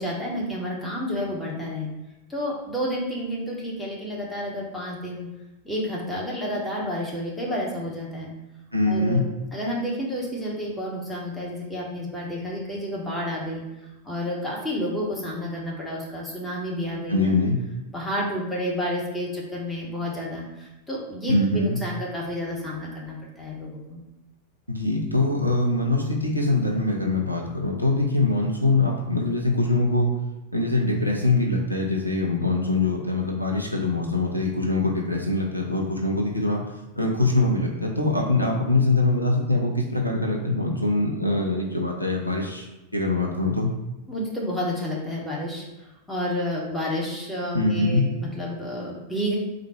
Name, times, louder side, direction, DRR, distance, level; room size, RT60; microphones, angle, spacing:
voice 1, 0.0-1.9 2.3-5.3 5.6-8.3 8.9-13.6 14.0-17.4 17.9-24.0 44.1-45.6 46.1-49.4, equal, 5° left, -5 dB, 1.2 m, -30 dB
voice 2, 8.7-9.2 17.1-17.6 21.3-21.8 24.7-30.1 30.5-36.6 37.0-42.7 42.9-43.7 47.5-48.1, left 2 dB, 90° left, -1 dB, 0.6 m, -23 dB
3.8 x 2.6 x 4.3 m, 1.0 s
figure-of-eight pair, 90°, 0 cm